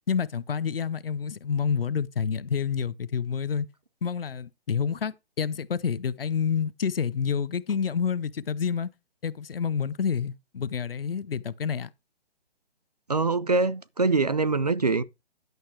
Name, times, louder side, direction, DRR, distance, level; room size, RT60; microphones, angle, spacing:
voice 1, 0.1-3.7 4.0-8.9 9.2-11.9, left 7 dB, 55° left, 0.8 m, -28 dB
voice 2, 13.1-15.0, right 3 dB, 40° right, 0.4 m, -24 dB
11.0 x 6.6 x 4.5 m
hypercardioid pair, 170°, 34 cm